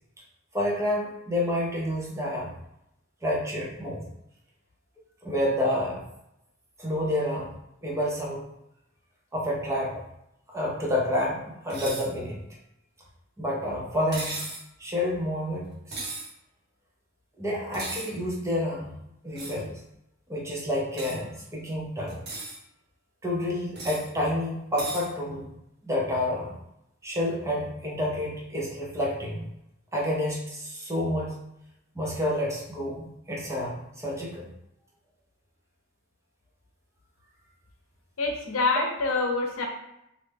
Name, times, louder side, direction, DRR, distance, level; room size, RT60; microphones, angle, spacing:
voice 1, 0.5-2.5 3.2-4.1 5.2-6.0 6.8-7.5 7.8-8.4 9.3-9.9 10.5-12.4 13.4-14.4 14.8-16.0 17.4-19.0 19.2-19.8 20.3-22.2 23.2-25.5 25.8-26.6 27.0-29.4 29.9-31.4 31.9-34.4, left 1 dB, 15° right, -4 dB, 0.8 m, -29 dB
sound 1, 11.7-12.1 14.1-14.6 15.9-16.3 17.7-18.1 19.4-19.6 21.0-21.2 22.1-22.6 23.8-24.1 24.8-25.1, right 2 dB, 55° right, 1.0 m, -36 dB
voice 2, 38.2-39.7, left 3 dB, 80° left, 2 dB, 0.7 m, -26 dB
3.2 x 2.6 x 3.4 m, 0.83 s
head